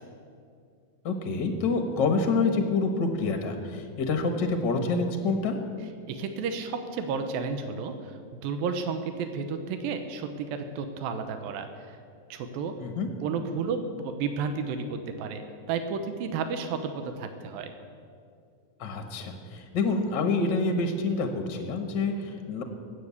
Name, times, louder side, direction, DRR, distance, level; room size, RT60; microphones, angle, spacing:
voice 1, 1.0-5.5 12.8-13.1 18.8-22.6, left 3 dB, 60° left, 5 dB, 1.1 m, -27 dB
voice 2, 6.1-7.9 8.3-11.7 12.3-12.7 13.2-15.4 15.7-17.7, right 5 dB, 85° right, 8 dB, 2.8 m, -32 dB
19.5 x 8.3 x 8.3 m, 2.3 s
omnidirectional pair, 4.0 m